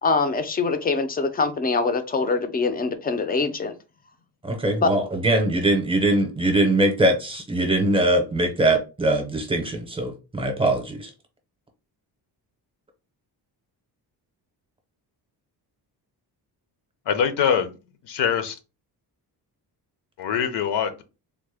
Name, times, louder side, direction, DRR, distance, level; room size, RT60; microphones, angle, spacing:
voice 1, 0.0-3.7 4.8-4.9, left 4 dB, 25° left, 0.4 m, -23 dB
voice 2, 4.4-11.1, right 1 dB, 15° right, 0.7 m, -22 dB
voice 3, 17.1-17.7 18.0-18.6 20.2-21.0, left 7 dB, 75° left, 0.6 m, -23 dB
3.5 x 2.1 x 3.3 m
wide cardioid pair, 160°, 41 cm